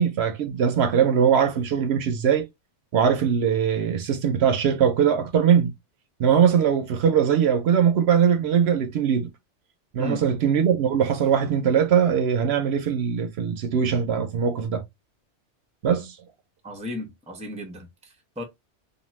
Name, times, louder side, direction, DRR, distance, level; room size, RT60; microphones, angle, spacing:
voice 1, 0.0-2.4 2.9-5.7 6.2-9.3 9.9-14.8 15.8-16.2, right 8 dB, 70° right, 0.8 m, -21 dB
voice 2, 16.6-18.4, left 2 dB, 10° right, 0.5 m, -35 dB
2.6 x 2.4 x 3.1 m
omnidirectional pair, 1.2 m